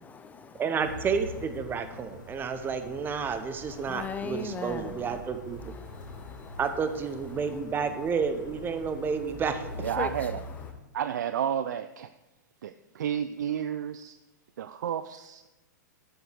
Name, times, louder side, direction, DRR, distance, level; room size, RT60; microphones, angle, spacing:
voice 1, 0.0-0.6 3.7-5.2 5.6-6.6 10.0-10.1, left 5 dB, 15° left, 9 dB, 0.9 m, -39 dB
voice 2, 0.6-5.7 6.6-9.6, right 6 dB, 20° right, 9 dB, 1.0 m, -30 dB
sound 1, 0.8-10.7, left 2 dB, 80° left, 2.7 m, -44 dB
voice 3, 9.8-10.4 10.9-12.1 12.6-14.2 14.6-15.5, right 9 dB, 65° right, 12 dB, 0.5 m, -31 dB
12.5 x 8.1 x 4.7 m, 1.0 s
figure-of-eight pair, 110°, 10 cm